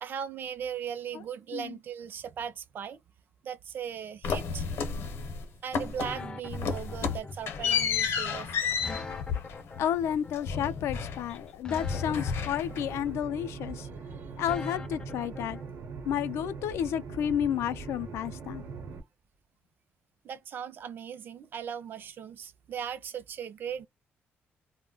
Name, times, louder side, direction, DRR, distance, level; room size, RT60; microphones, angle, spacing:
voice 1, 0.0-3.0 3.4-4.7 5.6-8.7 13.8-14.3 20.2-23.9, right 8 dB, 50° right, 0.4 m, -38 dB
sound 1, 4.2-5.4 5.7-6.2 6.5-11.5 11.7-13.0, left 6 dB, 65° left, 0.8 m, -31 dB
sound 2, 6.0-15.6, left 3 dB, 20° left, 0.4 m, -42 dB
voice 2, 9.8-13.9 14.4-15.6 16.1-18.6, left 9 dB, 80° left, 0.4 m, -31 dB
sound 3, 12.7-19.0, right 5 dB, 70° right, 0.8 m, -41 dB
2.2 x 2.1 x 3.7 m
cardioid pair, 145°, 4 cm